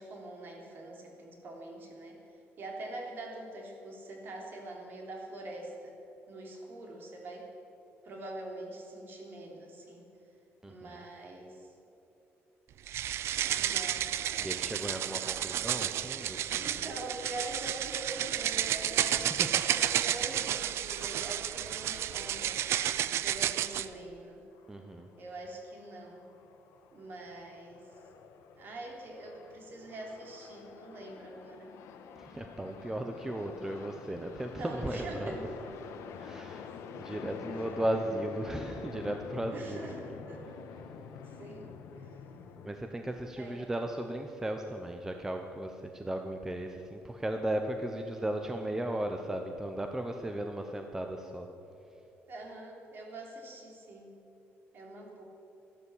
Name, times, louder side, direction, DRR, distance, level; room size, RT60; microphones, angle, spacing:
voice 1, 0.0-2.2 2.6-5.9 6.3-7.5 8.0-10.1 10.7-11.7 13.5-14.8 16.6-22.6 23.2-24.4 25.2-26.3 26.9-27.9 28.6-31.7 34.6-35.4 35.8-36.0 36.9-37.0 39.5-40.4 41.2-42.2 43.4-43.8 52.3-54.1 54.7-55.2, right 2 dB, 45° right, 0 dB, 3.3 m, -44 dB
voice 2, 10.6-11.0 14.4-16.8 19.0-19.6 24.7-25.1 32.2-35.5 36.2-40.2 42.6-51.5, right 1 dB, 10° right, 4 dB, 0.8 m, -36 dB
sound 1, 12.9-23.9, right 11 dB, 60° right, 0.5 m, -31 dB
sound 2, 24.6-25.4 25.7-42.7, left 6 dB, 85° left, 1.3 m, -48 dB
13.5 x 12.0 x 8.5 m, 2.9 s
cardioid pair, 145°, 5 cm